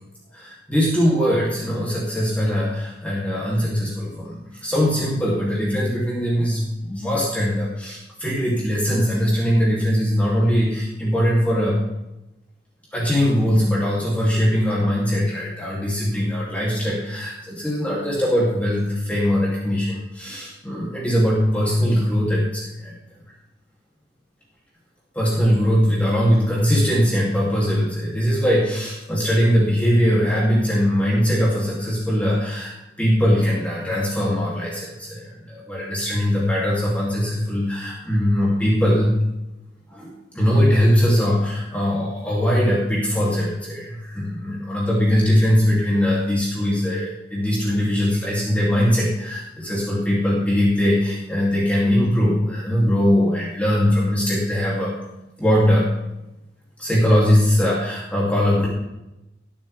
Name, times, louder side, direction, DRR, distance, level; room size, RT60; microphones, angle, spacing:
voice 1, 0.3-4.4 4.6-11.8 12.9-22.9 25.1-32.7 33.0-39.2 39.9-55.0 55.4-55.9 56.8-58.7, equal, 10° left, -6 dB, 2.7 m, -21 dB
19.0 x 7.3 x 3.4 m, 0.93 s
head